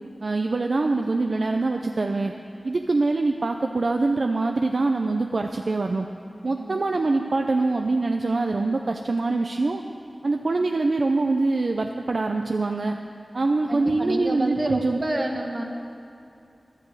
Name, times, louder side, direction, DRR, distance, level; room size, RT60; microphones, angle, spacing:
voice 1, 0.2-2.3 2.6-6.1 6.4-9.8 10.2-13.0 13.3-15.0, right 3 dB, 70° right, 4 dB, 0.5 m, -24 dB
voice 2, 13.7-15.6, right 1 dB, 45° right, 2 dB, 1.5 m, -28 dB
11.0 x 8.2 x 8.3 m, 2.5 s
wide cardioid pair, 50°, 0 cm